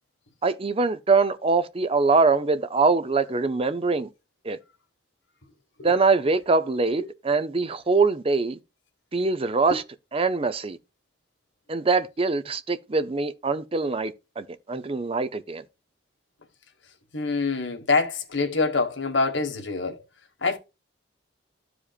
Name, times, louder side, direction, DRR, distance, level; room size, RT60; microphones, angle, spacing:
voice 1, 0.4-4.1 4.4-4.6 5.8-8.6 9.1-9.8 10.1-10.8 11.7-15.6, right 4 dB, 30° right, 0.6 m, -23 dB
voice 2, 17.1-20.0 20.4-20.6, left 3 dB, 75° left, 1.6 m, -25 dB
14.0 x 5.0 x 2.4 m
head